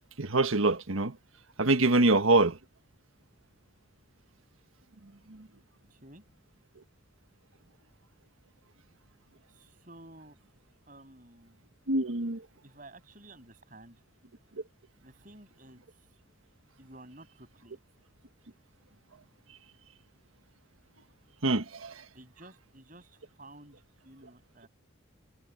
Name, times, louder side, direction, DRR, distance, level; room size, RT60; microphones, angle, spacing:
voice 1, 0.2-1.1 1.6-2.6 11.9-12.4 21.4-21.9, right 2 dB, 85° right, 1.5 m, -24 dB
voice 2, 5.9-6.2 9.5-10.4 10.9-11.6 12.6-14.0 15.0-15.8 16.8-17.8 22.1-24.7, right 1 dB, 40° right, 7.7 m, -53 dB
head